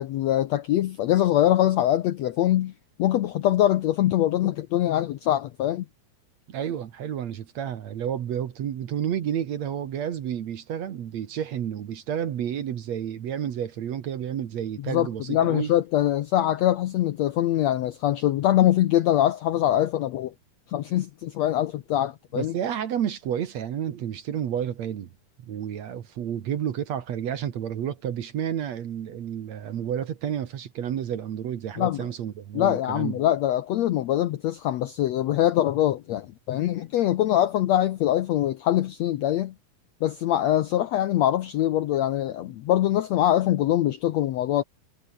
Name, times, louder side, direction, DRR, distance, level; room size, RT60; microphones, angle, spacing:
voice 1, 0.0-2.7 3.0-5.8 14.8-20.3 20.7-22.5 31.8-32.0 32.5-39.5 40.0-44.6, left 12 dB, 75° left, 1.6 m, -23 dB
voice 2, 6.5-15.7 22.3-25.1 25.4-33.2, right 9 dB, 60° right, 2.4 m, -30 dB
omnidirectional pair, 4.1 m